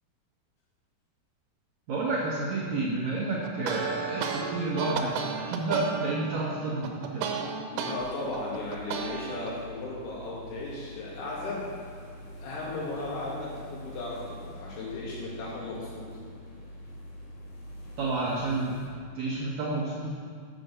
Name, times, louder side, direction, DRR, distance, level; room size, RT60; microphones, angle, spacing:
voice 1, 1.9-7.3 18.0-18.8 19.1-20.1, right 2 dB, 70° right, -6 dB, 1.7 m, -30 dB
sound 1, 3.4-7.9 8.3-9.5, right 6 dB, 90° right, 2.6 m, -33 dB
voice 2, 7.7-11.7 12.2-16.1, left 2 dB, 85° left, -6 dB, 3.5 m, -36 dB
sound 2, 8.0-18.9, equal, 55° left, 1.3 m, -45 dB
7.7 x 6.1 x 6.6 m, 2.3 s
omnidirectional pair, 4.6 m